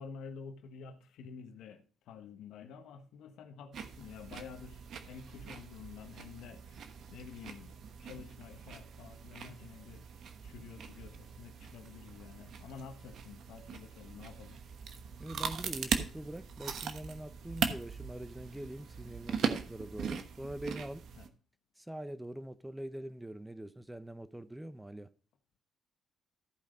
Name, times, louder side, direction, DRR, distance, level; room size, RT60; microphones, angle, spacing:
voice 1, 0.0-10.0 10.4-14.6 21.2-21.3, left 6 dB, 85° left, 1.2 m, -50 dB
sound 1, 3.7-21.3, right 6 dB, 70° right, 1.1 m, -40 dB
voice 2, 15.2-21.0 21.8-25.1, right 1 dB, 10° right, 0.8 m, -43 dB
14.5 x 5.1 x 3.8 m
cardioid pair, 90°, 0 cm